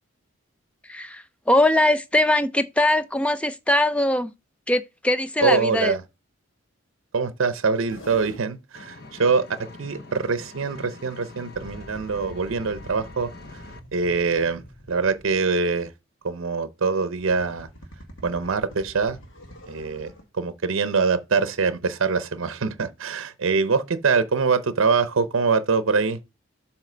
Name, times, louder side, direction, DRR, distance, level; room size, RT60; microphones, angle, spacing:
voice 1, 0.8-4.3 4.7-6.0, left 1 dB, 5° left, 0.3 m, -21 dB
voice 2, 5.4-6.0 7.1-13.6 13.9-14.6 14.9-15.9 16.2-17.7 18.2-19.2 19.7-26.2, right 4 dB, 70° right, 0.6 m, -24 dB
sound 1, 7.8-8.4 11.5-15.7 17.1-20.2, equal, 70° left, 1.5 m, -45 dB
Engine, 8.7-13.8, left 3 dB, 50° left, 0.7 m, -44 dB
7.5 x 3.0 x 5.0 m
head